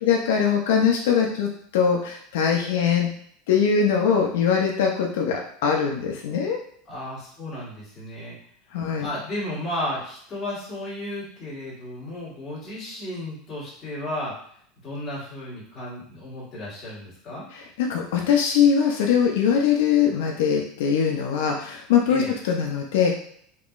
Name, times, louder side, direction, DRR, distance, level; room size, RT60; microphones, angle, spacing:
voice 1, 0.0-3.1 3.5-6.6 8.7-9.1 17.5-23.2, left 7 dB, 80° left, 1 dB, 0.5 m, -22 dB
voice 2, 6.9-8.4 8.9-14.3 14.8-17.5 22.1-22.3, left 1 dB, 20° left, -8 dB, 1.5 m, -33 dB
3.7 x 2.9 x 2.4 m, 0.64 s
supercardioid pair, 160°, 0 cm